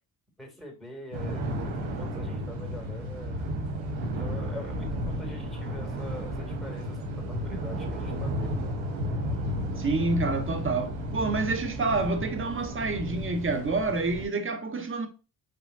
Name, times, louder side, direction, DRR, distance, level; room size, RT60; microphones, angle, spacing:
voice 1, 0.4-1.4 2.0-3.5 4.0-8.7, left 2 dB, ahead, 2.4 m, -44 dB
sound 1, 1.1-14.3, equal, 85° right, 1.0 m, -33 dB
voice 2, 9.8-15.1, right 3 dB, 30° right, 1.1 m, -28 dB
6.1 x 3.1 x 2.6 m
hypercardioid pair, 50°, 43 cm